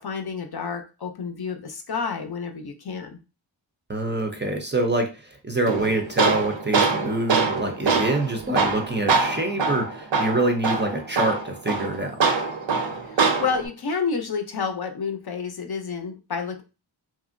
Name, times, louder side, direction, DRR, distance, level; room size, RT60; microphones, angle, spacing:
voice 1, 0.0-3.2 13.0-16.6, left 5 dB, 55° left, 5 dB, 0.6 m, -30 dB
voice 2, 3.9-12.2, right 2 dB, 25° right, 3 dB, 0.5 m, -25 dB
Tools, 5.7-13.7, right 4 dB, 70° right, 0.6 m, -24 dB
2.9 x 2.5 x 2.5 m, 0.32 s
wide cardioid pair, 70°, 47 cm